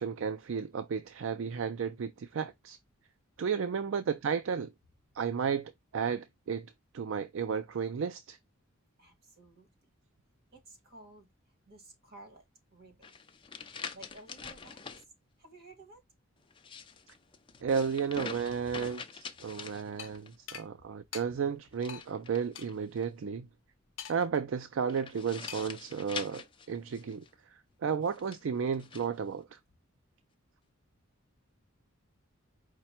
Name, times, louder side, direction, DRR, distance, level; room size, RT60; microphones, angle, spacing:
voice 1, 0.0-2.8 3.4-4.7 5.1-6.7 6.9-8.4 17.6-23.5 24.1-29.6, right 6 dB, 65° right, 0.4 m, -33 dB
voice 2, 9.0-9.9 10.5-11.3 11.7-12.5 12.7-13.1 13.7-15.1 15.4-16.0 17.6-17.7 20.7-20.8, right 2 dB, 50° right, 1.6 m, -55 dB
sound 1, 13.0-15.0 16.5-20.4 21.7-23.0 24.9-27.3 28.0-29.1, left 5 dB, 25° left, 0.5 m, -45 dB
sound 2, 20.0-20.1 20.5-20.7 21.1-21.3 21.9-22.1 22.6-22.7 24.0-24.4 25.5-25.8, left 8 dB, 65° left, 0.6 m, -43 dB
4.9 x 2.1 x 4.3 m
head